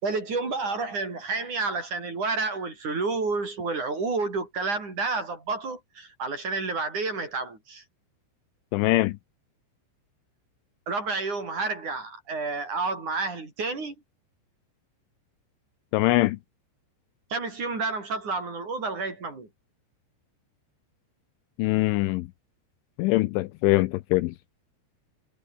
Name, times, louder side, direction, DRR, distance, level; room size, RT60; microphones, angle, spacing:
voice 1, 0.0-7.8 10.9-13.9 17.3-19.5, right 3 dB, 35° right, 7.0 m, -30 dB
voice 2, 8.7-9.2 15.9-16.4 21.6-22.3 23.0-24.3, left 19 dB, 80° left, 3.0 m, -23 dB
omnidirectional pair, 5.9 m